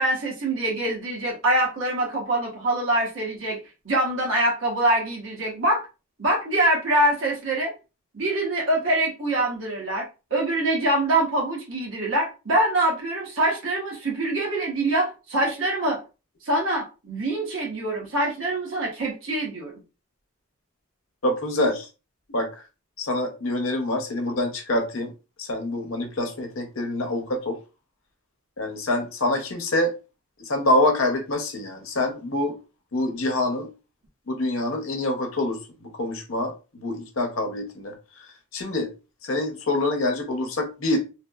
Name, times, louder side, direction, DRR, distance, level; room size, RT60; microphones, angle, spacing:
voice 1, 0.0-3.6 3.8-5.8 6.2-7.7 8.1-16.0 16.4-19.8, right 1 dB, 70° right, 1.0 m, -24 dB
voice 2, 21.2-21.9 22.3-22.5 23.0-25.1 25.4-27.6 28.6-29.9 30.4-32.6 32.9-33.7 34.3-37.9 38.5-38.9 39.2-41.0, left 1 dB, 75° left, 0.7 m, -26 dB
3.2 x 2.0 x 2.2 m
head